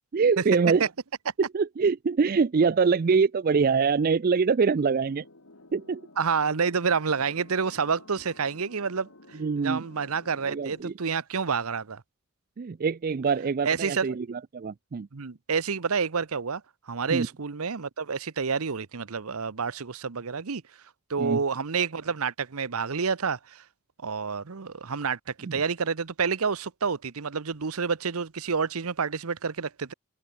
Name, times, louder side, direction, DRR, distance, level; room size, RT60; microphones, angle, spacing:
voice 1, 0.1-0.9 1.4-5.2 5.7-6.0 9.4-9.8 10.5-10.9 12.6-15.1 17.1-17.3 21.2-21.4 25.4-25.6, right 5 dB, 40° right, 0.4 m, -24 dB
sound 1, 5.0-10.8, left 2 dB, 70° left, 2.6 m, -52 dB
voice 2, 6.2-9.1 9.6-12.0 13.6-14.1 15.1-16.6 16.9-20.6 21.1-23.6 24.0-29.9, right 5 dB, 75° right, 0.9 m, -28 dB
open air
head